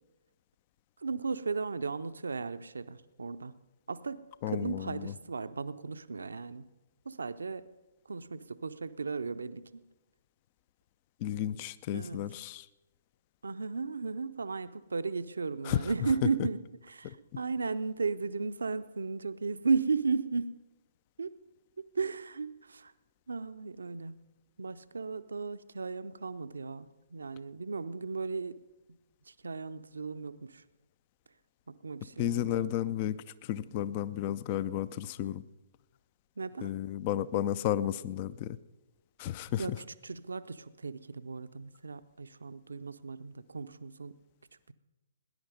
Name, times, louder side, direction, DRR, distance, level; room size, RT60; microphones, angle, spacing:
voice 1, 1.0-3.5 3.9-6.6 7.1-7.6 8.1-9.8 11.9-12.3 13.4-16.6 16.9-20.5 21.2-21.3 21.9-22.9 23.3-24.1 24.6-28.6 29.4-30.6 31.7-32.6 36.4-36.7 39.6-44.1, right 4 dB, 70° right, 13 dB, 0.6 m, -35 dB
voice 2, 4.4-5.1 11.2-12.7 15.6-15.9 17.0-17.1 32.2-33.2 33.5-35.4 36.6-38.6 39.2-39.8, left 11 dB, 35° left, 18 dB, 0.5 m, -32 dB
19.0 x 10.5 x 5.3 m, 1.1 s
figure-of-eight pair, 125°, 0 cm